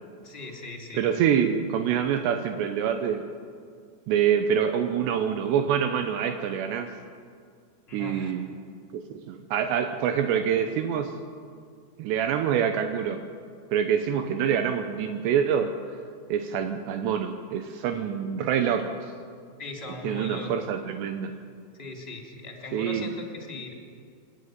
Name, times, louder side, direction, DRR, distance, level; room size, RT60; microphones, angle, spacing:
voice 1, 0.2-1.0 7.9-8.3 19.6-20.7 21.8-23.7, left 2 dB, 15° left, 0 dB, 3.3 m, -39 dB
voice 2, 0.9-3.2 4.1-6.9 7.9-8.6 8.9-11.1 12.0-13.2 13.7-15.7 16.3-19.1 20.0-21.3 22.7-23.1, right 8 dB, 80° right, 6 dB, 3.0 m, -26 dB
28.0 x 11.0 x 9.5 m, 2.1 s
omnidirectional pair, 5.0 m